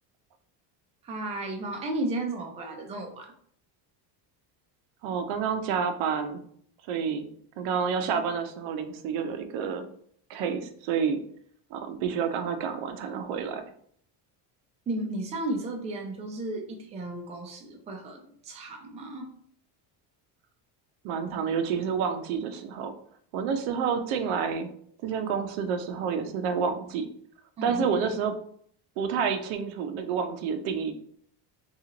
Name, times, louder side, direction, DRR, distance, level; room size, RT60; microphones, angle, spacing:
voice 1, 1.0-3.3 14.9-19.3 27.6-27.9, right 2 dB, 15° right, 2 dB, 0.3 m, -34 dB
voice 2, 5.0-6.4 6.9-7.3 7.6-9.9 10.3-11.2 11.7-13.6 21.0-22.9 23.3-24.7 25.0-27.0 27.6-28.3 29.0-30.9, right 6 dB, 90° right, 7 dB, 0.7 m, -29 dB
3.0 x 2.4 x 3.7 m, 0.62 s
cardioid pair, 155°, 45 cm